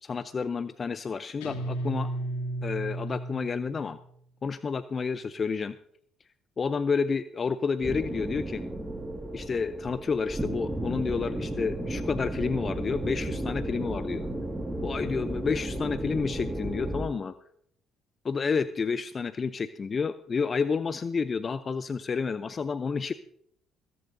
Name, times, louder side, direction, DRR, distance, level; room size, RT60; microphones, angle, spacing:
voice 1, 0.0-2.1 2.6-4.0 4.4-5.8 6.6-8.7 9.3-14.3 14.8-17.3 18.2-23.1, left 5 dB, 40° left, 13 dB, 0.6 m, -30 dB
Guitar, 1.4-4.0, right 1 dB, 85° left, 2.0 m, -34 dB
sound 1, 7.8-17.1, right 1 dB, 10° right, 2.0 m, -33 dB
24.5 x 10.5 x 2.7 m, 0.69 s
hypercardioid pair, 60°, 0 cm